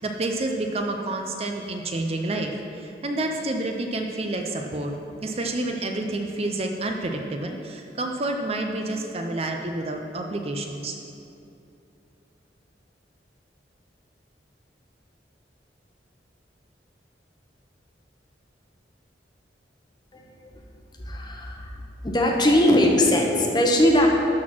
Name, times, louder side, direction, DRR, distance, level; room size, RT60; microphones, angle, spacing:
voice 1, 0.0-4.9 5.2-11.0, right 2 dB, 35° right, 3 dB, 0.6 m, -29 dB
voice 2, 20.9-21.8 22.0-24.1, left 1 dB, 25° left, 0 dB, 1.0 m, -20 dB
12.0 x 4.2 x 6.0 m, 2.7 s
head